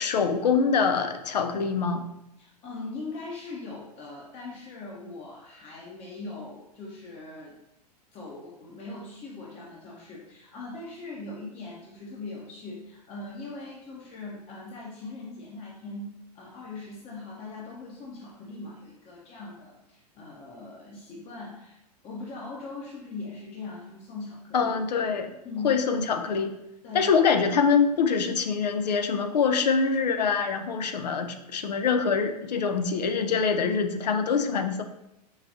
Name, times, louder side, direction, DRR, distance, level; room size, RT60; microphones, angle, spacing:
voice 1, 0.0-2.1 24.5-25.3 25.6-26.6 26.9-34.8, left 5 dB, 80° left, 7 dB, 0.4 m, -24 dB
voice 2, 2.4-7.5 8.1-24.7 25.4-25.8 26.8-27.1, left 3 dB, 30° left, -3 dB, 0.7 m, -40 dB
4.7 x 2.2 x 2.7 m, 0.87 s
hypercardioid pair, 100°, 21 cm